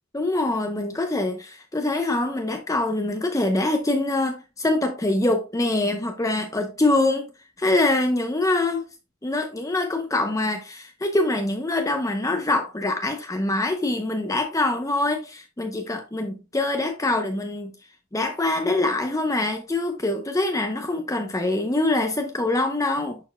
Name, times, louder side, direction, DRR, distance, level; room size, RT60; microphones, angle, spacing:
voice 1, 0.1-7.3 7.6-8.9 9.2-17.7 18.1-23.2, left 2 dB, 15° left, 0.6 m, -24 dB
10.5 x 4.4 x 2.2 m
head